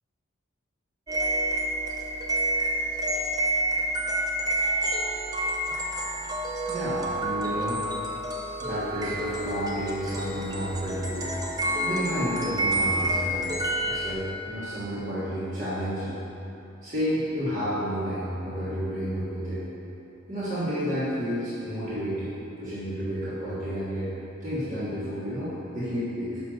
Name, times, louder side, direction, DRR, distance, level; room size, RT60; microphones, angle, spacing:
sound 1, 1.1-14.1, right 1 dB, 20° right, 0.6 m, -28 dB
voice 1, 6.7-7.8 8.6-11.3 11.8-13.6 13.9-16.2 16.8-19.6 20.3-24.1 24.4-26.4, equal, 35° right, -12 dB, 1.6 m, -31 dB
6.4 x 5.0 x 6.2 m, 3.0 s
head